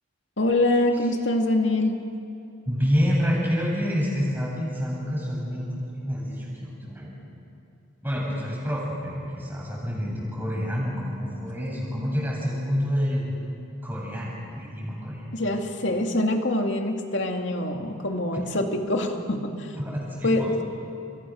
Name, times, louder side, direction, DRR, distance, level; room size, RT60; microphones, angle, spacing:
voice 1, 0.4-2.0 15.3-19.7 20.2-20.6, left 1 dB, 65° left, 3 dB, 2.6 m, -24 dB
voice 2, 2.7-7.1 8.0-13.3 13.8-15.3 19.7-20.5, equal, 10° right, -4 dB, 7.7 m, -28 dB
30.0 x 28.0 x 6.5 m, 2.8 s
head